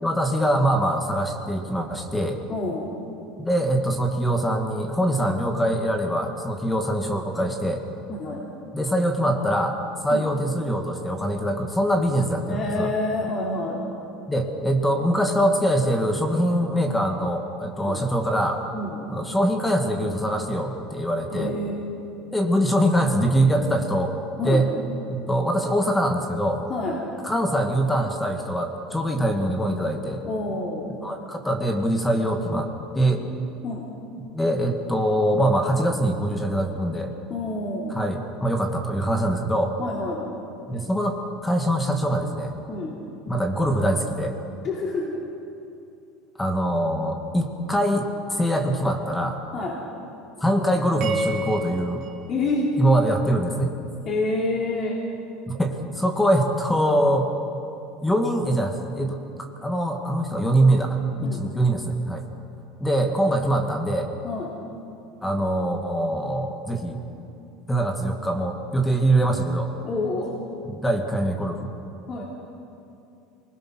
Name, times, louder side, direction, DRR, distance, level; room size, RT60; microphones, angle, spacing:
voice 1, 0.0-2.4 3.4-7.8 8.7-12.9 14.3-18.6 19.1-21.5 22.3-24.1 24.4-24.7 25.1-26.6 27.2-30.2 31.0-32.7 32.9-33.3 34.2-37.1 37.9-39.7 40.7-41.1 41.4-42.5 43.3-44.4 46.4-49.4 50.4-52.0 52.8-53.8 55.5-57.3 58.0-62.2 62.8-64.1 65.2-67.0 67.7-69.7 70.6-71.7, right 1 dB, 10° left, 3 dB, 2.0 m, -23 dB
voice 2, 2.5-2.9 8.1-8.4 10.1-10.3 12.5-13.8 17.8-18.0 18.7-19.0 21.3-21.7 24.4-24.6 26.7-27.0 30.3-30.9 33.6-33.8 37.3-38.0 39.8-40.3 42.7-42.9 44.6-45.2 49.5-49.8 52.3-52.7 54.1-54.9 61.2-61.5 64.2-64.5 69.8-70.3 72.1-72.2, left 2 dB, 35° left, -4 dB, 3.7 m, -28 dB
sound 1, 51.0-53.4, right 2 dB, 50° right, 2.5 m, -32 dB
24.5 x 20.5 x 6.2 m, 2.7 s
supercardioid pair, 135°, 0 cm